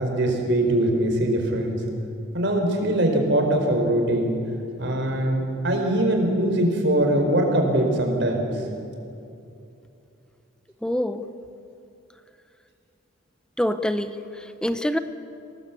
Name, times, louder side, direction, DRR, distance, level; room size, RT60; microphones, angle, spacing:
voice 1, 0.0-1.8 2.3-4.3 4.8-8.6, right 1 dB, 55° right, 2 dB, 4.4 m, -22 dB
voice 2, 10.8-11.2 13.6-15.0, equal, 5° left, 10 dB, 0.8 m, -26 dB
25.0 x 19.0 x 8.4 m, 2.7 s
head